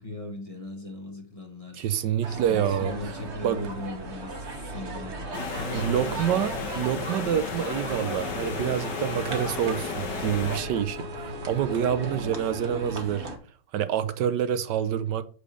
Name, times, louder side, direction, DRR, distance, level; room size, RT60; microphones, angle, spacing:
voice 1, 0.0-1.9 2.3-6.3 12.0-12.3, left 1 dB, 20° left, 1.3 m, -38 dB
voice 2, 1.7-2.9 3.4-3.6 5.7-13.3 13.7-15.2, right 9 dB, 80° right, 1.3 m, -27 dB
sound 1, 2.2-13.4, right 2 dB, 40° right, 1.4 m, -37 dB
sound 2, 5.3-10.6, left 6 dB, 80° left, 1.7 m, -34 dB
Bowed string instrument, 7.9-13.1, left 5 dB, 60° right, 1.5 m, -42 dB
6.8 x 5.0 x 6.6 m
omnidirectional pair, 1.9 m